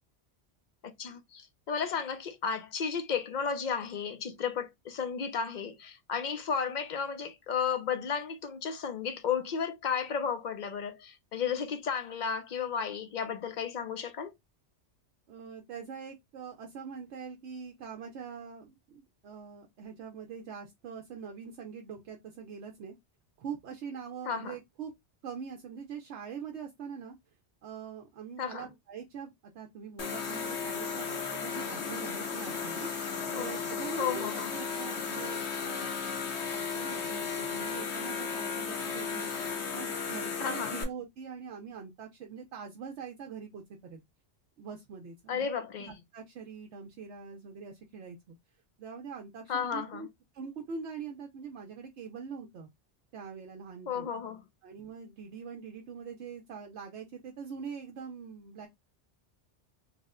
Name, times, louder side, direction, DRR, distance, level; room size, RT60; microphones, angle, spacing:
voice 1, 0.8-14.3 24.3-24.6 28.4-28.7 33.3-33.5 34.0-34.5 40.4-40.7 45.3-46.0 49.5-50.1 53.9-54.4, left 6 dB, 55° left, 0.6 m, -33 dB
voice 2, 15.3-23.0 23.4-24.9 25.2-27.2 27.6-36.0 36.5-39.3 39.7-44.0 44.6-45.5 45.8-48.4 48.8-50.1 50.3-52.7 53.1-54.1 54.6-58.7, right 6 dB, 75° right, 0.9 m, -43 dB
sound 1, 30.0-40.8, left 5 dB, 70° left, 1.1 m, -35 dB
3.3 x 2.1 x 3.6 m
omnidirectional pair, 1.2 m